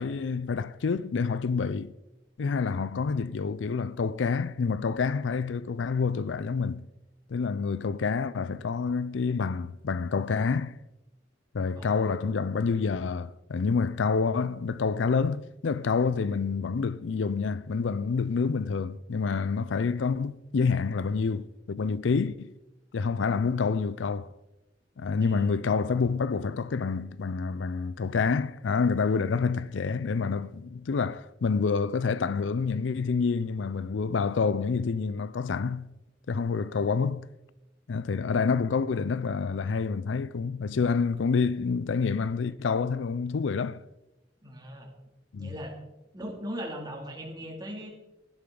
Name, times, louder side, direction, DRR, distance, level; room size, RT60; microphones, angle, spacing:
voice 1, 0.0-1.9 2.4-6.8 7.3-10.8 11.5-22.5 22.9-24.3 25.0-35.9 36.3-37.3 37.9-43.8 45.3-45.5, left 5 dB, 85° left, 0.5 m, -28 dB
voice 2, 11.7-12.1 25.2-25.5 44.4-44.9 45.4-45.8 46.1-47.9, equal, 20° right, 2.6 m, -39 dB
17.0 x 12.0 x 3.9 m
head